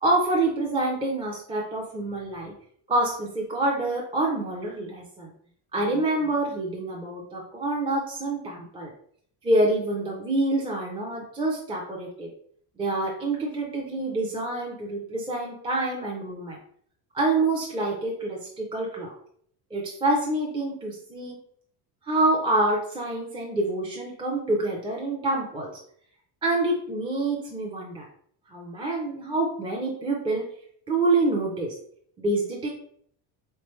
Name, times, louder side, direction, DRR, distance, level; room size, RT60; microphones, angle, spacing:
voice 1, 0.0-2.5 2.9-5.3 5.7-8.9 9.4-12.3 12.8-16.6 17.1-19.1 19.7-21.4 22.0-25.7 26.4-28.1 28.5-30.4 30.9-31.7 32.2-32.7, right 2 dB, 10° right, -3 dB, 0.4 m, -26 dB
3.6 x 3.3 x 3.1 m, 0.62 s
cardioid pair, 155°, 44 cm